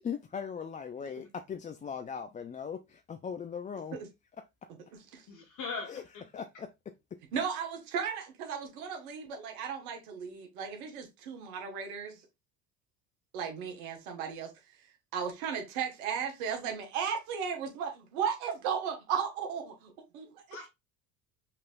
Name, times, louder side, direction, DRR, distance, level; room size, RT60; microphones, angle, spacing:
voice 1, 0.0-4.0 5.9-6.0 6.3-6.7, left 7 dB, 20° left, 0.4 m, -39 dB
voice 2, 5.3-6.3 20.5-20.7, left 4 dB, 45° left, 1.2 m, -40 dB
voice 3, 7.3-12.2 13.3-14.5 15.1-20.4, right 7 dB, 75° right, 1.3 m, -35 dB
5.6 x 3.4 x 2.5 m
hypercardioid pair, 70°, 43 cm